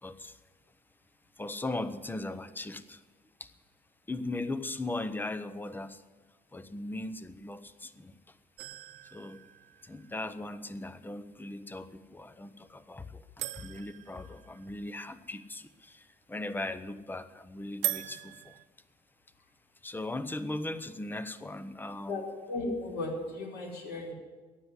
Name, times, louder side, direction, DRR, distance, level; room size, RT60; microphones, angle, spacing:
voice 1, 0.0-0.4 1.4-3.0 3.4-3.5 4.1-6.0 6.5-8.4 9.0-9.4 9.8-18.6 19.8-22.2, left 2 dB, 10° left, 0.9 m, -38 dB
sound 1, 8.6-10.5 13.4-15.2 17.8-18.6, right 14 dB, 85° right, 0.6 m, -39 dB
voice 2, 22.5-24.1, left 2 dB, 80° left, 5.2 m, -35 dB
15.0 x 9.8 x 9.9 m
cardioid pair, 110°, 17 cm